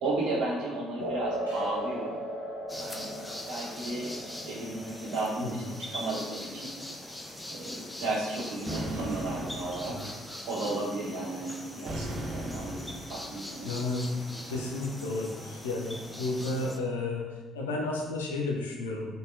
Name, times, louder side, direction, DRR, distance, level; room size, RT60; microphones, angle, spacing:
voice 1, 0.0-2.2 2.7-3.1 3.5-4.1 4.4-5.6 5.9-6.7 7.5-10.0 10.4-13.7, right 2 dB, 60° right, -4 dB, 1.1 m, -34 dB
sound 1, 1.0-8.0, equal, 90° right, 0.9 m, -38 dB
sound 2, 2.7-16.8, left 1 dB, 10° left, 0.6 m, -42 dB
sound 3, 8.7-10.1 11.9-13.3, right 1 dB, 40° right, 0.6 m, -37 dB
voice 2, 13.6-14.1 14.5-19.2, left 2 dB, 75° left, -1 dB, 0.5 m, -32 dB
3.8 x 3.5 x 2.6 m, 1.4 s
figure-of-eight pair, 50°, 0 cm